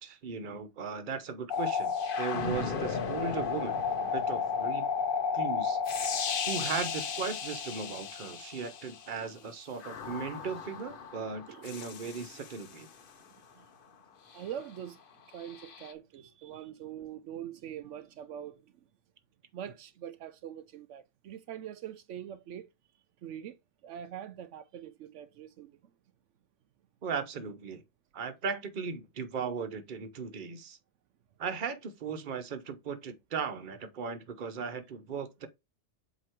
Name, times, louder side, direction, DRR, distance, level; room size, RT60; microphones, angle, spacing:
voice 1, 0.0-4.9 5.3-5.8 6.5-12.9 27.0-27.8 28.1-30.8 31.4-35.5, right 5 dB, 45° right, 1.0 m, -37 dB
sound 1, 1.5-9.1 9.8-12.8 15.5-15.9, left 6 dB, 50° left, 0.9 m, -33 dB
voice 2, 14.3-15.0 15.3-18.6 19.5-22.7 23.2-23.6 23.8-25.8, right 10 dB, 80° right, 0.9 m, -43 dB
7.7 x 3.0 x 4.4 m
omnidirectional pair, 1.2 m